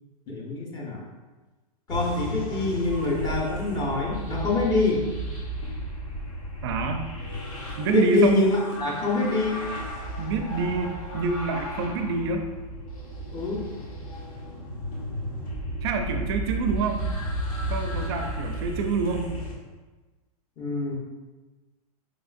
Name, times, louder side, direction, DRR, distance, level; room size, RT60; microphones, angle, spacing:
voice 1, 0.3-1.0 1.9-5.0 7.9-9.6 13.3-13.6 20.6-20.9, left 3 dB, 20° left, -3 dB, 0.8 m, -25 dB
sound 1, 1.9-19.5, equal, 60° left, 1.5 m, -34 dB
voice 2, 6.6-7.0 7.8-8.5 10.2-12.5 15.8-17.1 17.7-19.3, right 4 dB, 45° right, 5 dB, 0.4 m, -27 dB
5.0 x 3.5 x 2.5 m, 1.2 s
supercardioid pair, 155°, 20 cm